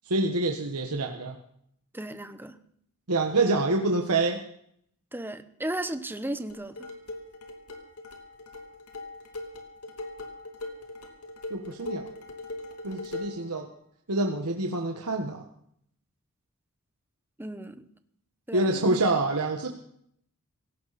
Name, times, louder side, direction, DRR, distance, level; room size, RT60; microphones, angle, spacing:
voice 1, 0.1-1.4 3.1-4.4 11.5-12.1 12.8-13.7 14.1-15.4 18.5-19.7, right 2 dB, 85° right, 3 dB, 1.6 m, -26 dB
voice 2, 1.9-2.6 5.1-6.9 17.4-17.8 18.5-19.0, right 1 dB, 10° right, 10 dB, 1.1 m, -35 dB
sound 1, 6.5-13.5, left 2 dB, 80° left, 2.9 m, -40 dB
18.5 x 17.5 x 4.3 m, 0.68 s
head